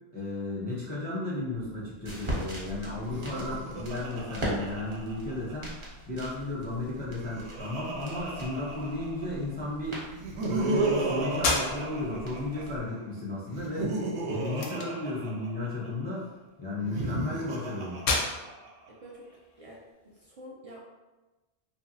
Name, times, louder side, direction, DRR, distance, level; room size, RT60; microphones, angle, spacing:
voice 1, 0.1-5.7 6.1-10.0 10.4-13.9 14.3-16.3 16.6-18.0, left 2 dB, 15° left, -6 dB, 0.3 m, -34 dB
sound 1, 1.5-12.8, right 1 dB, 40° right, 0.9 m, -41 dB
Laughter, 3.0-5.8 6.9-9.4 10.1-12.8 13.5-15.9 16.8-18.9, right 3 dB, 80° right, 0.9 m, -34 dB
sound 2, 11.4-20.3, left 3 dB, 80° left, 0.8 m, -36 dB
voice 2, 18.9-19.3 19.6-20.8, equal, 60° right, -4 dB, 0.3 m, -48 dB
2.8 x 2.5 x 2.7 m, 1.1 s
omnidirectional pair, 1.1 m